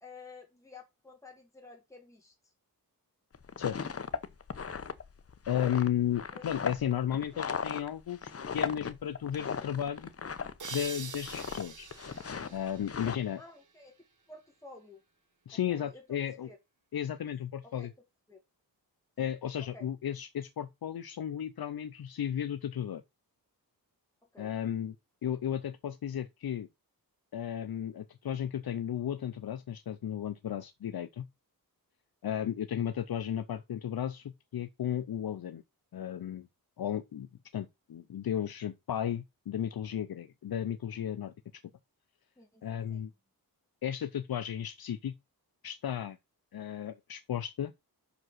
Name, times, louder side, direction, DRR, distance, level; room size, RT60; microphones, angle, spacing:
voice 1, 0.0-2.3 6.3-6.4 7.3-7.4 13.4-13.9 14.3-15.0 15.7-16.6 17.8-17.9 18.3-18.4 19.2-19.3 19.7-19.9 24.3-24.5 42.4-43.0, left 3 dB, 10° left, 2.1 m, -52 dB
sound 1, 3.3-10.8 11.1-11.6 11.9-13.2, left 6 dB, 40° left, 0.7 m, -37 dB
voice 2, 3.6-3.9 5.5-10.1 10.7-11.9 12.5-13.4 15.5-16.5 16.9-17.9 19.2-23.0 24.4-25.0 25.2-26.7 27.3-31.3 32.2-35.6 35.9-36.5 36.8-37.3 37.5-41.3 42.6-43.1 43.8-45.1 45.6-46.2 46.5-47.7, left 10 dB, 70° left, 0.6 m, -34 dB
sound 2, 10.6-14.0, right 5 dB, 50° right, 1.2 m, -45 dB
6.0 x 5.2 x 6.1 m
wide cardioid pair, 125°, 38 cm